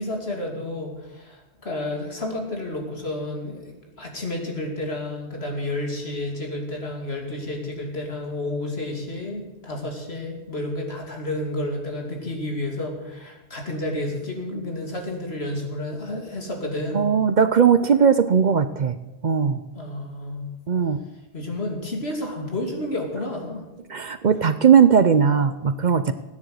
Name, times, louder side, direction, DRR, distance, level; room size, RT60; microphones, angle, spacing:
voice 1, 0.0-17.1 19.7-20.5 21.3-23.6, left 1 dB, 70° left, 1 dB, 3.1 m, -31 dB
voice 2, 16.9-19.0 19.2-19.6 20.7-21.0 23.9-26.1, right 7 dB, 50° right, 12 dB, 0.7 m, -18 dB
16.5 x 9.7 x 8.0 m, 1.1 s
omnidirectional pair, 1.1 m